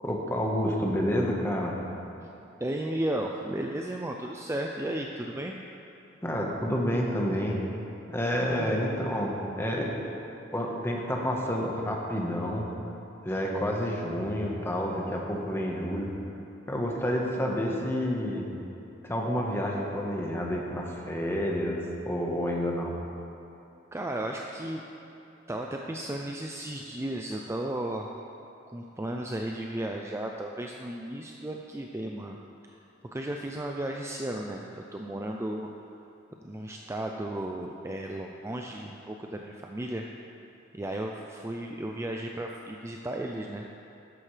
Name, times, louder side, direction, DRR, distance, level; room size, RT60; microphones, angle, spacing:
voice 1, 0.0-1.8 6.2-7.6 8.1-9.9 10.5-12.7 13.2-16.1 16.7-18.5 19.0-21.8 22.0-22.9, equal, 15° left, -1 dB, 1.3 m, -29 dB
voice 2, 2.6-5.6 8.5-8.8 23.9-24.8 25.5-28.1 28.7-32.4 32.7-32.8 33.1-35.7 36.4-40.1 40.7-43.7, right 1 dB, 15° right, 1 dB, 0.4 m, -34 dB
13.0 x 11.0 x 3.3 m, 2.9 s
head